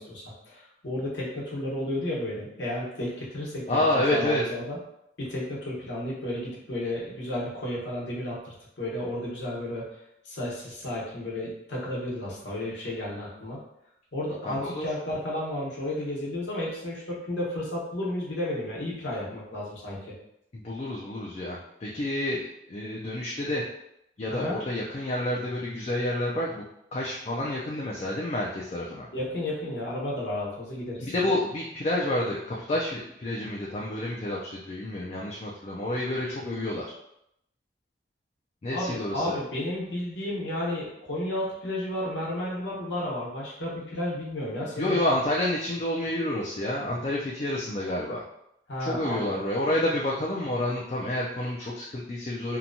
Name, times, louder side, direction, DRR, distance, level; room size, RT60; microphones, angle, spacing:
voice 1, 0.0-4.8 5.2-9.9 10.2-13.6 14.1-20.1 24.3-24.6 29.1-31.1 38.7-45.1 48.7-49.4, left 1 dB, 80° left, -5 dB, 1.0 m, -32 dB
voice 2, 3.7-4.4 14.5-14.8 20.5-22.4 22.7-23.6 24.2-26.6 26.9-29.1 31.0-36.9 38.6-39.4 44.8-48.2 48.8-52.6, left 1 dB, 35° left, -4 dB, 0.3 m, -29 dB
2.8 x 2.2 x 2.6 m, 0.78 s
head